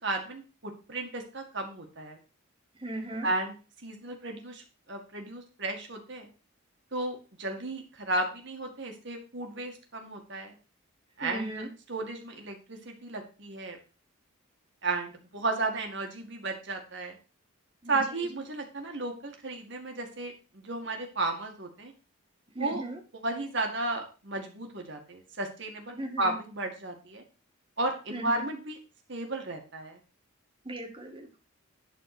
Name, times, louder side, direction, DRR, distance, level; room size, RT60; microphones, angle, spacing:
voice 1, 0.0-2.2 3.2-3.5 3.8-6.3 6.9-10.6 11.2-13.8 14.8-17.2 17.9-21.9 22.6-22.8 23.2-27.2 27.8-28.8 29.1-30.0, right 2 dB, 55° right, 3 dB, 2.1 m, -34 dB
voice 2, 2.8-3.3 11.2-11.7 17.8-18.3 22.5-23.0 25.9-26.3 28.1-28.5 30.6-31.4, right 1 dB, 25° right, 3 dB, 1.8 m, -37 dB
11.5 x 4.3 x 6.1 m, 0.35 s
head